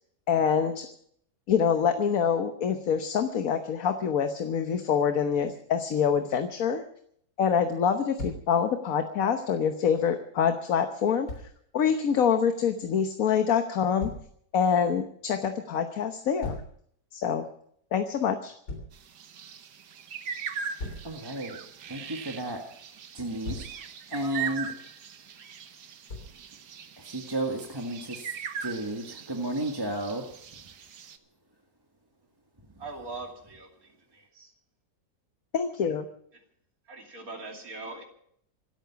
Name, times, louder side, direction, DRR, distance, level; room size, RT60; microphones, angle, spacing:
voice 1, 0.3-0.9 1.5-6.8 7.4-11.3 11.7-14.1 14.5-16.6 17.1-17.4 17.9-18.5 35.5-36.1, left 7 dB, 60° left, 1.4 m, -25 dB
Thump thud, 8.2-8.5 11.3-11.5 14.0-14.3 16.4-16.7 18.7-18.9 20.8-21.1 23.2-23.8 26.1-26.4, left 2 dB, 80° left, 4.0 m, -37 dB
sound 1, 18.9-31.2, right 7 dB, 80° right, 1.7 m, -40 dB
voice 2, 21.0-21.6 21.9-22.6 23.1-24.7 27.0-28.3 28.6-30.3, right 1 dB, 15° right, 1.7 m, -33 dB
voice 3, 32.8-34.5 36.3-36.4 36.9-38.0, right 3 dB, 60° right, 3.2 m, -42 dB
26.5 x 9.0 x 5.8 m
omnidirectional pair, 1.7 m